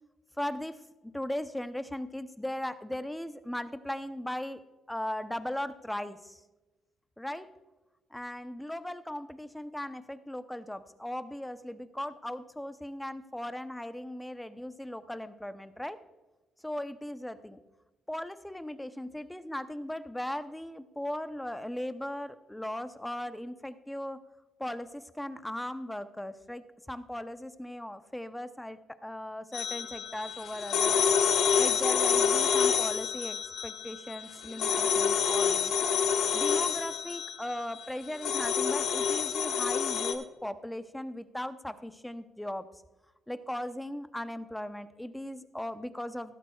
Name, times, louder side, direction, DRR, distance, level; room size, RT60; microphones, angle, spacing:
voice 1, 0.4-0.8 1.0-4.6 4.9-6.4 7.2-7.5 8.1-16.0 16.6-17.6 18.1-24.2 24.6-30.9 31.6-35.7 36.3-42.7 43.3-46.4, left 1 dB, 5° left, 11 dB, 0.7 m, -38 dB
sound 1, 29.5-40.1, left 7 dB, 80° left, 1.2 m, -28 dB
15.5 x 12.5 x 2.4 m, 1.1 s
cardioid pair, 90°, 0 cm